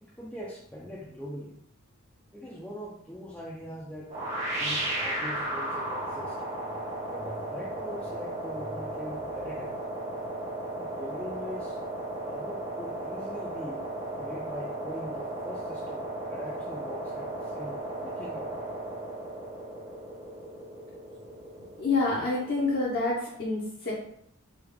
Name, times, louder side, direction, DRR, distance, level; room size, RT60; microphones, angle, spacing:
voice 1, 0.0-1.6 2.3-4.1 4.5-6.4 7.1-10.4 10.7-11.8 12.2-13.9 14.2-18.7, equal, 5° left, -6 dB, 0.4 m, -42 dB
sound 1, 4.1-22.9, right 1 dB, 35° right, 0.9 m, -35 dB
voice 2, 21.8-23.9, left 3 dB, 50° left, -6 dB, 0.7 m, -27 dB
3.4 x 2.3 x 3.2 m, 0.70 s
head